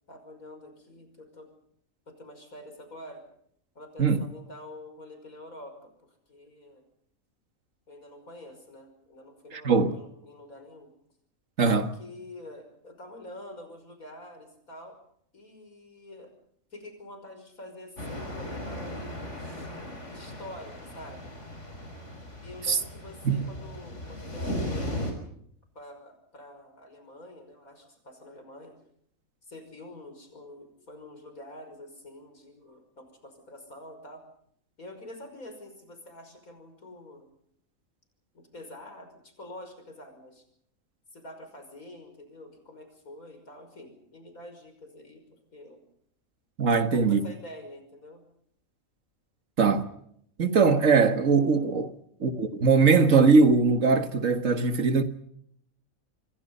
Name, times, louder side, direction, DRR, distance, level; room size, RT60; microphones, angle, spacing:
voice 1, 0.1-1.5 2.1-3.2 3.7-6.8 7.9-10.9 11.7-15.0 15.3-16.3 16.7-19.7 20.1-21.3 22.4-25.1 25.7-28.8 29.5-34.2 34.8-37.3 38.3-40.4 41.1-45.8 46.7-48.2, left 1 dB, 80° left, 6.2 m, -46 dB
voice 2, 9.5-9.9 11.6-11.9 22.7-22.8 23.2-23.4 46.6-47.2 49.6-49.9 50.4-51.9 52.2-55.0, right 4 dB, 65° right, 1.9 m, -21 dB
sound 1, 18.0-25.1, left 1 dB, 55° left, 6.1 m, -37 dB
27.0 x 23.0 x 5.5 m
omnidirectional pair, 1.5 m